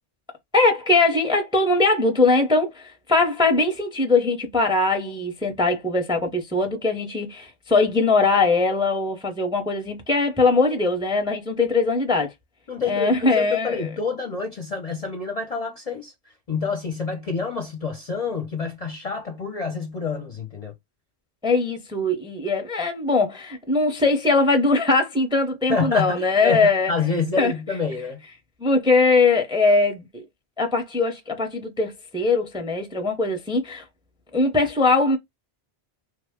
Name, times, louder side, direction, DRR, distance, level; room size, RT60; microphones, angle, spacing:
voice 1, 0.5-12.3 12.9-13.9 21.4-26.9 27.4-27.5 28.6-30.2 30.6-33.8 34.3-35.2, left 3 dB, 5° right, 0.5 m, -21 dB
voice 2, 12.7-20.7 25.7-28.2, left 4 dB, 45° left, 0.5 m, -28 dB
3.1 x 2.1 x 3.4 m
omnidirectional pair, 1.1 m